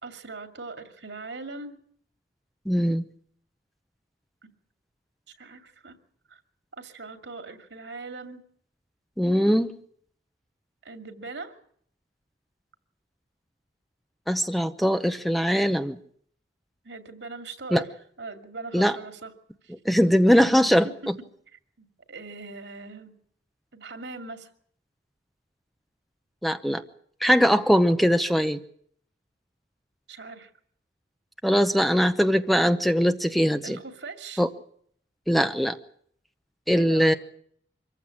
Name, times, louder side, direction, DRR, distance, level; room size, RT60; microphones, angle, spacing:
voice 1, 0.0-1.8 5.4-6.0 6.3-6.4 6.8-8.4 10.8-11.5 16.8-17.9 18.2-19.3 19.6-19.7 20.8-20.9 21.8-23.1 23.7-24.5 30.1-30.5 33.6-34.4 36.8-37.2, right 3 dB, 75° right, 7 dB, 2.5 m, -40 dB
voice 2, 2.7-3.0 9.2-9.7 14.3-16.0 17.7-17.8 18.7-19.0 19.8-21.1 26.4-26.8 27.2-28.6 31.4-33.8 34.4-34.5 35.3-35.8 36.7-37.1, equal, ahead, 9 dB, 0.8 m, -21 dB
25.0 x 15.0 x 8.6 m, 0.64 s
head